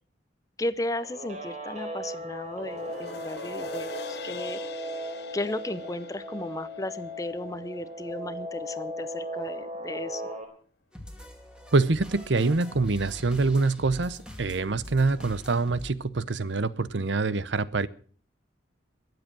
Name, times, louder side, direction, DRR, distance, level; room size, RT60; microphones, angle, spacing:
voice 1, 0.6-3.9 4.2-4.6 5.3-10.2, left 1 dB, 20° left, 15 dB, 0.7 m, -34 dB
Guitar, 1.0-10.4, equal, 40° right, 3.6 m, -37 dB
sound 1, 2.5-9.1 9.5-9.6, left 5 dB, 60° left, 1.2 m, -45 dB
sound 2, 10.9-15.9, left 1 dB, 5° right, 2.3 m, -43 dB
voice 2, 11.7-17.9, right 3 dB, 75° right, 17 dB, 0.8 m, -25 dB
23.0 x 7.9 x 6.1 m, 0.43 s
head